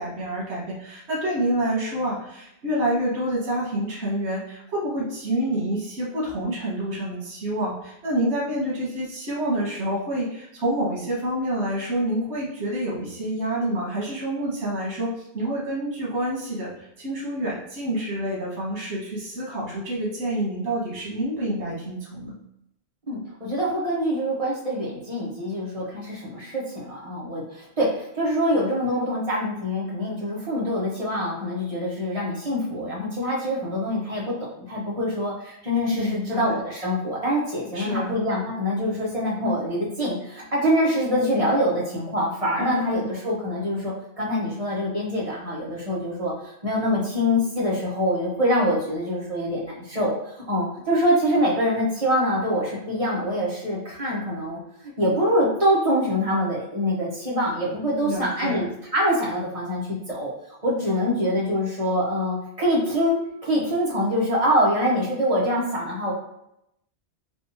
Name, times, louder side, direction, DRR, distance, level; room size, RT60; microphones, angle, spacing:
voice 1, 0.0-22.3 35.9-36.5 37.7-38.2 42.6-43.1 58.0-58.6, right 1 dB, 85° right, -5 dB, 1.3 m, -28 dB
voice 2, 23.1-50.1 50.5-54.6 55.0-58.7 58.9-59.8 60.1-60.3 60.6-66.1, equal, 35° right, -5 dB, 0.9 m, -25 dB
3.4 x 2.6 x 2.7 m, 0.80 s
omnidirectional pair, 1.1 m